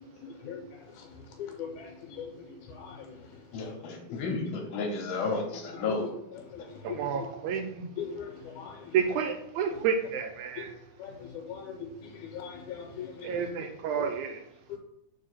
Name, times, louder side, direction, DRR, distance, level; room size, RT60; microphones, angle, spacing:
voice 1, 1.4-1.8 2.2-2.3 2.8-3.0 6.0-6.1 6.9-7.3 8.0-8.3 8.6-8.7 11.0-11.1 11.5-11.7 12.3-13.3 14.0-14.1 14.7-14.8, left 7 dB, 80° left, 1 dB, 2.1 m, -38 dB
voice 2, 3.5-6.1, left 3 dB, 65° left, 1 dB, 1.9 m, -32 dB
voice 3, 6.8-7.8 8.9-10.7 13.2-14.4, right 7 dB, 80° right, 5 dB, 1.9 m, -30 dB
6.5 x 3.6 x 4.2 m, 0.83 s
omnidirectional pair, 3.6 m